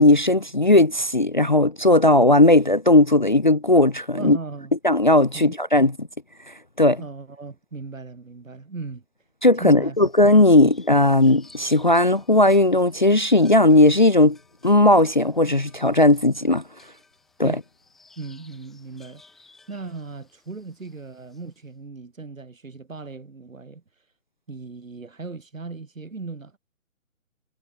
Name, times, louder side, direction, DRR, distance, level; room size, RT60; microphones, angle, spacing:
voice 1, 0.0-4.4 4.8-5.9 6.8-7.0 9.4-14.4 14.6-16.6 17.4-17.6, left 1 dB, 35° left, 0.4 m, -17 dB
voice 2, 4.1-4.7 5.3-5.5 7.0-9.0 9.6-10.0 10.6-10.7 17.4-17.6 18.2-19.2 19.7-23.8 24.5-26.6, right 4 dB, 70° right, 6.3 m, -37 dB
sound 1, 9.9-21.6, left 3 dB, ahead, 0.7 m, -56 dB
figure-of-eight pair, 145°, 41 cm